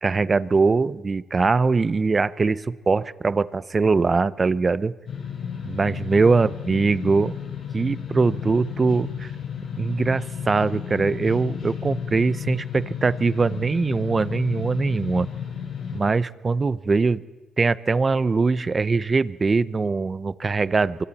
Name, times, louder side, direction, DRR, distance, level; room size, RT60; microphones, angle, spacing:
voice 1, 0.0-4.9 5.6-7.4 7.7-9.3 9.8-15.3 15.9-17.2 17.6-21.0, right 4 dB, 30° right, 18 dB, 0.8 m, -22 dB
sound 1, 5.1-16.0, left 7 dB, 60° left, 7.7 m, -33 dB
25.0 x 24.5 x 4.2 m, 1.3 s
cardioid pair, 90°, 0 cm